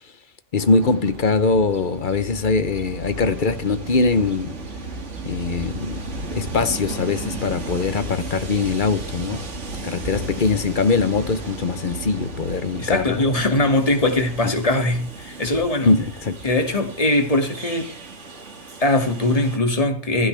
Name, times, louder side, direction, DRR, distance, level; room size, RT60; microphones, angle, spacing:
voice 1, 0.5-4.6 5.2-6.0 6.3-9.4 9.8-13.2 15.9-16.4, left 4 dB, 45° left, 0.8 m, -22 dB
Train, 0.6-19.6, right 2 dB, 55° right, 2.3 m, -34 dB
voice 2, 12.8-15.9 16.4-17.9 18.8-20.3, left 1 dB, 25° left, 2.4 m, -21 dB
16.0 x 15.0 x 3.4 m
omnidirectional pair, 1.5 m